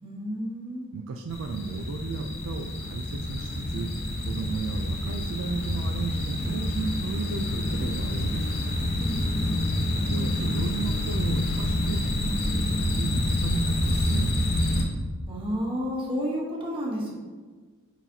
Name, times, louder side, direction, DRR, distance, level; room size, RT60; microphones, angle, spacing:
voice 1, 0.0-0.9 9.0-9.6 15.3-17.1, equal, 25° right, -3 dB, 1.2 m, -31 dB
voice 2, 0.9-3.9 4.3-8.6 10.0-14.3, right 4 dB, 65° right, 4 dB, 0.4 m, -34 dB
sound 1, 1.3-14.8, left 1 dB, 45° left, 0.9 m, -27 dB
7.2 x 5.7 x 2.7 m, 1.4 s
head